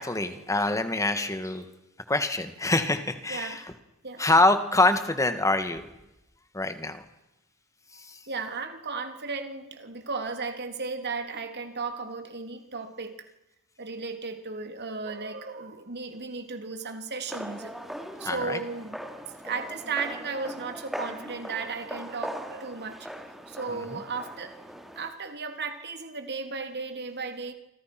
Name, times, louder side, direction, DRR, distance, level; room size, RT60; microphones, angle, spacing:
voice 1, 0.0-1.7 2.1-3.6 4.2-5.9 6.5-7.0 7.9-8.2 18.2-18.6 23.7-24.0, left 2 dB, 15° left, 9 dB, 2.2 m, -25 dB
voice 2, 3.3-3.7 4.0-4.2 8.3-13.3 13.8-17.8 18.2-19.0 19.4-23.1 23.5-24.5 24.9-27.5, right 4 dB, 50° right, 6 dB, 3.3 m, -35 dB
sound 1, 17.3-25.1, equal, ahead, 2.9 m, -40 dB
29.5 x 25.5 x 6.3 m, 0.94 s
head